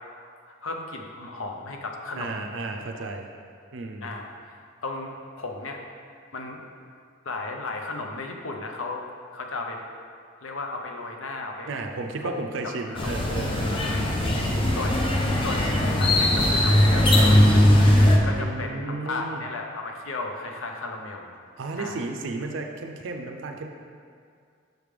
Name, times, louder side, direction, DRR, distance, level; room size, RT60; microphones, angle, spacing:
voice 1, 0.6-2.5 2.9-3.1 4.0-5.8 6.3-6.6 7.2-9.1 9.3-9.8 10.4-11.7 12.2-12.3 12.9-13.1 13.8-14.2 14.8-15.0 15.4-15.7 16.0-17.7 18.2-21.4 21.8-22.0, left 3 dB, 75° left, 2 dB, 0.6 m, -35 dB
voice 2, 2.2-3.2 3.7-4.1 11.7-14.8 18.3-19.4 21.6-23.7, right 3 dB, 60° right, 3 dB, 0.4 m, -34 dB
sound 1, 12.9-18.2, left 1 dB, 25° left, 0.5 m, -19 dB
6.4 x 3.3 x 5.1 m, 2.2 s
head